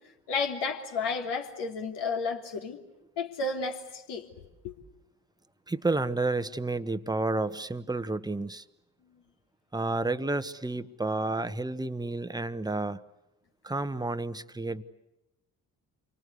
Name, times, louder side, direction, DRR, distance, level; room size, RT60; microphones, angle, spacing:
voice 1, 0.3-2.8 3.2-4.3 4.6-4.7, left 4 dB, 65° left, 2 dB, 3.4 m, -32 dB
voice 2, 5.7-8.6 9.7-13.0 13.6-14.8, right 2 dB, 10° right, 12 dB, 1.3 m, -30 dB
29.0 x 25.0 x 8.3 m, 0.95 s
hypercardioid pair, 45°, 45 cm